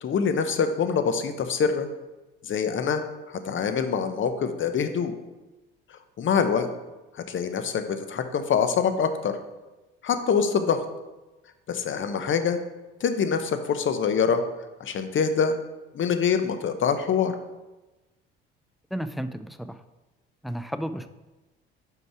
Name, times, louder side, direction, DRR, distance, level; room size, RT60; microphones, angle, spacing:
voice 1, 0.0-1.9 2.4-3.0 3.4-5.1 6.2-6.7 7.3-9.4 10.0-10.8 11.7-12.6 13.0-14.4 14.8-15.6 15.9-17.3, left 6 dB, 40° left, 9 dB, 0.8 m, -24 dB
voice 2, 18.9-19.8 20.4-21.1, equal, ahead, 11 dB, 0.3 m, -32 dB
5.2 x 4.8 x 4.8 m, 1.1 s
hypercardioid pair, 60°, 30 cm